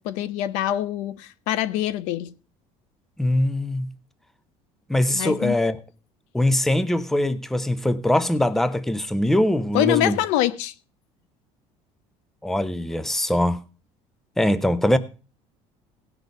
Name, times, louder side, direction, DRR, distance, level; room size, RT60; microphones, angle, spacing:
voice 1, 0.0-2.3 5.1-5.5 9.7-10.7, left 12 dB, 85° left, 0.8 m, -24 dB
voice 2, 3.2-3.9 4.9-5.8 6.3-10.2 12.4-13.6 14.4-15.0, left 1 dB, 5° left, 0.6 m, -22 dB
17.0 x 6.1 x 5.2 m
cardioid pair, 150°, 12 cm